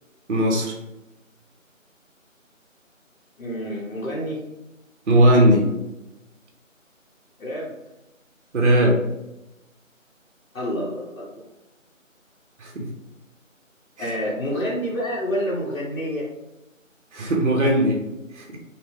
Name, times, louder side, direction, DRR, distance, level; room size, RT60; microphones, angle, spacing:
voice 1, 0.3-0.7 5.1-5.7 8.5-9.0 12.6-12.9 14.0-14.1 17.1-18.0 18.3-18.6, right 1 dB, 60° right, -1 dB, 0.5 m, -18 dB
voice 2, 3.4-4.4 7.4-7.7 10.5-11.5 14.0-16.3, equal, 75° left, -5 dB, 0.7 m, -28 dB
2.1 x 2.1 x 2.9 m, 0.94 s
figure-of-eight pair, 175°, 40 cm